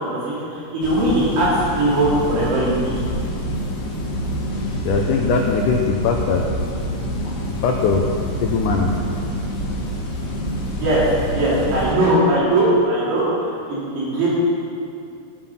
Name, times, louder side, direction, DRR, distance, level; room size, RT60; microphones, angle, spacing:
voice 1, 0.0-3.1 10.6-14.3, right 1 dB, 85° right, -8 dB, 5.5 m, -20 dB
sound 1, 0.8-11.9, equal, 50° left, 2.3 m, -26 dB
voice 2, 4.8-6.4 7.6-8.0 8.4-8.9, left 5 dB, 85° left, 1 dB, 1.8 m, -20 dB
15.5 x 7.2 x 5.7 m, 2.4 s
omnidirectional pair, 4.7 m